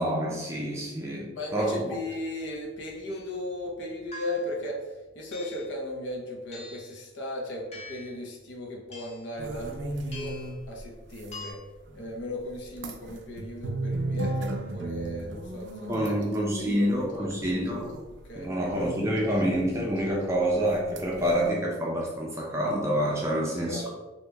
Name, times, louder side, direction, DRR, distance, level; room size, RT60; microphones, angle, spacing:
voice 1, 0.0-1.9 15.9-18.0 18.4-23.9, equal, 15° right, -3 dB, 0.5 m, -27 dB
voice 2, 1.4-10.4 10.7-11.6 11.9-16.1 16.6-17.6 18.2-18.5 23.1-23.9, left 1 dB, 75° left, -1 dB, 0.7 m, -36 dB
sound 1, 3.1-3.3 4.1-4.6 5.3-5.7 6.5-6.9 7.7-8.2 8.9-9.3 10.1-10.6 11.3-11.5, left 2 dB, 35° left, 0.6 m, -44 dB
sound 2, 9.4-10.8 11.2-11.3 11.9-12.0 12.7-17.1 17.4-18.2 18.7-20.0 20.5-20.7 21.0-21.5, right 2 dB, 70° right, 0.4 m, -35 dB
2.8 x 2.8 x 3.3 m, 1.1 s
head